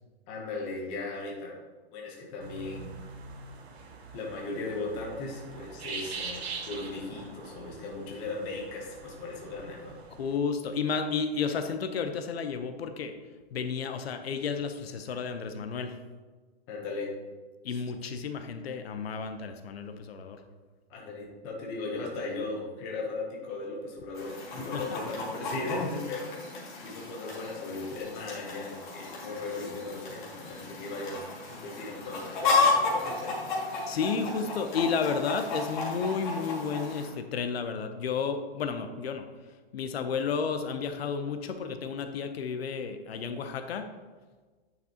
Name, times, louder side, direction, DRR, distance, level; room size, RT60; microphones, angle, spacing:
voice 1, 0.3-1.6 1.9-2.9 4.1-10.0 16.7-17.1 17.7-17.8 20.9-26.3 26.8-31.2 31.5-33.5, left 3 dB, 15° left, -2 dB, 0.8 m, -37 dB
sound 1, 2.4-10.4, right 5 dB, 90° right, 1.5 m, -43 dB
voice 2, 10.2-13.1 13.5-15.9 17.6-20.4 24.7-25.0 33.9-39.3 39.7-43.9, left 5 dB, 70° left, 7 dB, 0.8 m, -32 dB
Chicken rooster, 24.1-37.1, left 3 dB, 50° left, 2.3 m, -33 dB
9.3 x 5.9 x 2.9 m, 1.3 s
hypercardioid pair, 180°, 32 cm